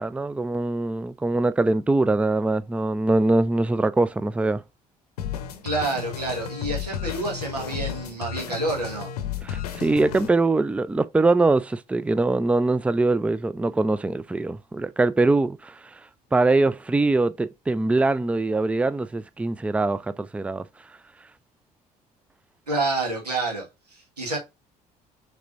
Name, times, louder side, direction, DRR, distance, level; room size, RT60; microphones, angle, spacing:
voice 1, 0.0-4.6 9.4-16.0 16.3-20.6, right 2 dB, 5° right, 0.4 m, -23 dB
sound 1, 5.2-10.3, left 8 dB, 75° left, 0.7 m, -33 dB
voice 2, 5.6-9.1 22.7-24.4, right 2 dB, 85° right, 1.6 m, -28 dB
5.9 x 3.3 x 2.5 m
figure-of-eight pair, 55°, 20 cm